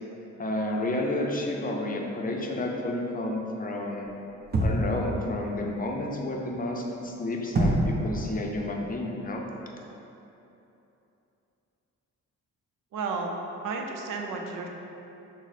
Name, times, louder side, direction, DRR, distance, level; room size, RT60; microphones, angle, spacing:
voice 1, 0.4-4.1 4.6-9.4, left 1 dB, 30° left, 0 dB, 0.6 m, -31 dB
sound 1, 4.5-5.0 7.5-8.1, right 1 dB, 30° right, 0.7 m, -24 dB
voice 2, 12.9-13.3 13.6-14.7, right 4 dB, 90° right, 2 dB, 0.5 m, -32 dB
5.9 x 2.1 x 4.1 m, 3.0 s
cardioid pair, 85°, 31 cm